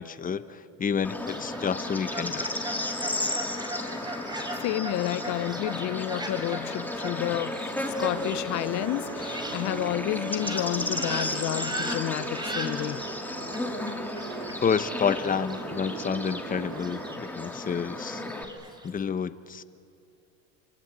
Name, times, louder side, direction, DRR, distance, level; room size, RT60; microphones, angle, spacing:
voice 1, 0.0-2.5 14.6-18.2 18.8-19.6, left 6 dB, 20° left, 1.1 m, -29 dB
Bird / Insect, 1.0-18.4, left 1 dB, 5° left, 2.4 m, -34 dB
Fowl, 1.3-18.9, right 1 dB, 10° right, 4.0 m, -40 dB
voice 2, 4.6-7.7 8.0-13.0, left 16 dB, 50° left, 0.9 m, -30 dB
sound 1, 8.0-17.2, right 8 dB, 75° right, 2.6 m, -41 dB
27.5 x 25.0 x 8.3 m
supercardioid pair, 100°, 37 cm